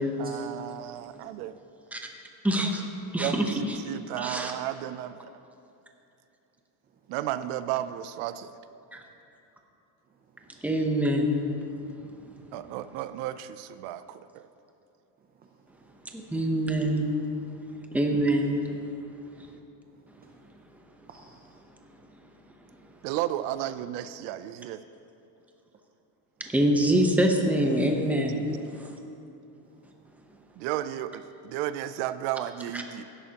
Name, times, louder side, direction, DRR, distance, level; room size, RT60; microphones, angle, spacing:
voice 1, 0.2-1.6 3.2-5.3 7.1-8.5 12.5-14.5 23.0-24.8 30.6-33.0, right 12 dB, 85° right, 13 dB, 0.6 m, -33 dB
voice 2, 0.8-1.4 10.3-10.4 12.3-12.4 15.3-15.9 20.2-20.4 21.1-21.6 29.8-30.0 30.3-30.4, right 4 dB, 20° right, 3 dB, 0.5 m, -56 dB
voice 3, 2.4-2.8 3.1-3.8 4.2-4.5 8.9-9.0 10.6-11.4 16.1-17.1 17.9-18.6 19.4-19.5 26.4-28.4 28.8-29.0 32.7-32.8, right 1 dB, 5° right, 2 dB, 0.8 m, -25 dB
16.5 x 11.0 x 2.9 m, 2.7 s
cardioid pair, 150°, 45 cm